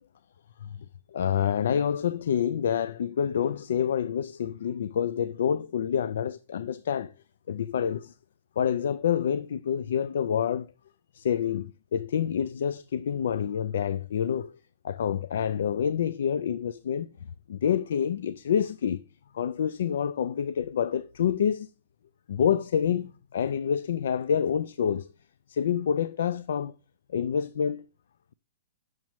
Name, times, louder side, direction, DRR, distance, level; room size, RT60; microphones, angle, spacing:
voice 1, 1.1-7.1 7.5-8.1 8.6-10.7 11.1-14.5 14.8-17.1 17.5-19.0 19.3-21.7 22.3-25.1 25.5-26.7 27.1-27.8, left 8 dB, 65° left, 0.3 m, -27 dB
7.2 x 6.2 x 3.0 m
hypercardioid pair, 180°, 0 cm